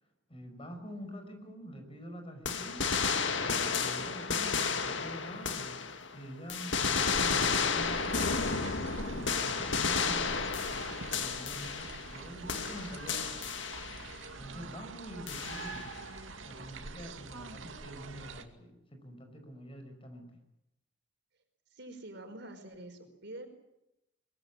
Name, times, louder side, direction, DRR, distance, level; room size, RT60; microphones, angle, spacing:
voice 1, 0.3-2.8 3.3-5.8 6.1-8.4 9.1-10.4 10.7-13.4 14.3-15.9 16.4-20.3, equal, 30° left, 6 dB, 5.7 m, -46 dB
sound 1, 2.5-6.2 6.5-12.2 12.5-14.1 15.3-16.0, left 5 dB, 70° left, 2.0 m, -32 dB
sound 2, 6.9-18.4, right 3 dB, 90° right, 2.4 m, -45 dB
voice 2, 21.7-23.5, right 1 dB, 60° right, 6 dB, 4.9 m, -46 dB
23.5 x 21.5 x 8.9 m, 0.85 s
head